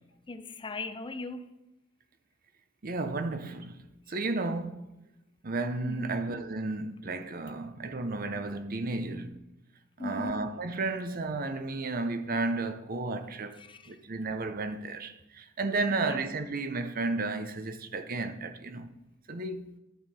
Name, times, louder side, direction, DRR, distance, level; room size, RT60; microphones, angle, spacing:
voice 1, 0.3-1.5 5.8-6.1 10.0-10.5 13.6-13.9 16.1-16.2, left 2 dB, 25° left, 0.6 m, -38 dB
voice 2, 2.8-4.9 5.4-9.4 10.0-13.6 13.9-18.9 19.3-19.7, right 3 dB, 45° right, 0.7 m, -33 dB
13.5 x 5.7 x 4.3 m
head